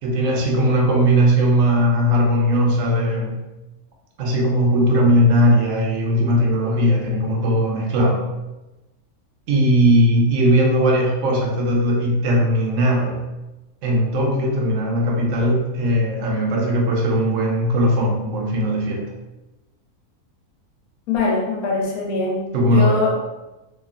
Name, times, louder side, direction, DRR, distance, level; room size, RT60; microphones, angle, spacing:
voice 1, 0.0-3.4 4.2-8.2 9.5-13.2 13.8-19.1 22.5-23.0, equal, 70° right, 0 dB, 0.8 m, -18 dB
voice 2, 21.1-23.1, left 3 dB, 80° left, -2 dB, 1.1 m, -22 dB
2.9 x 2.2 x 2.3 m, 1.0 s
omnidirectional pair, 1.6 m